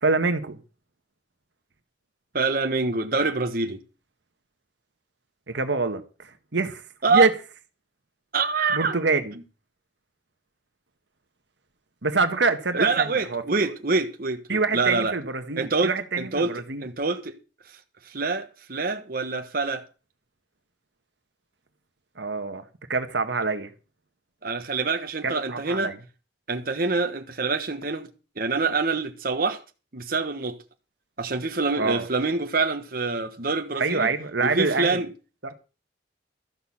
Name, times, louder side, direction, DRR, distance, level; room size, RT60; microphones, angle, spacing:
voice 1, 0.0-0.6 5.5-6.8 7.1-7.3 8.7-9.3 12.0-13.4 14.5-16.8 22.2-22.6 22.9-23.7 25.2-26.0 31.8-32.1 33.7-35.0 35.4-35.5, right 3 dB, 80° right, 1.4 m, -25 dB
voice 2, 2.3-3.8 7.0-7.3 8.3-9.0 12.7-15.2 15.6-16.5 16.8-17.3 17.7-17.8 18.0-19.8 24.4-25.9 26.5-28.1 28.4-29.6 29.9-30.6 31.2-34.1 34.4-35.1, right 4 dB, 55° right, 1.3 m, -26 dB
13.5 x 6.4 x 7.2 m
head